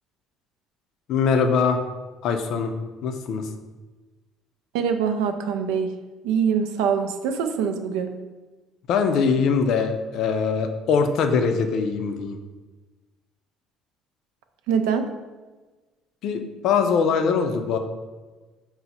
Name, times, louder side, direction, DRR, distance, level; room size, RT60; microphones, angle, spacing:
voice 1, 1.1-1.8 2.2-2.7 3.0-3.5 8.9-12.4 16.2-17.8, left 5 dB, 65° left, 6 dB, 0.4 m, -22 dB
voice 2, 4.7-5.9 6.2-8.1 14.7-15.1, right 7 dB, 85° right, 7 dB, 0.3 m, -24 dB
4.5 x 2.0 x 4.0 m, 1.3 s
supercardioid pair, 85°, 0 cm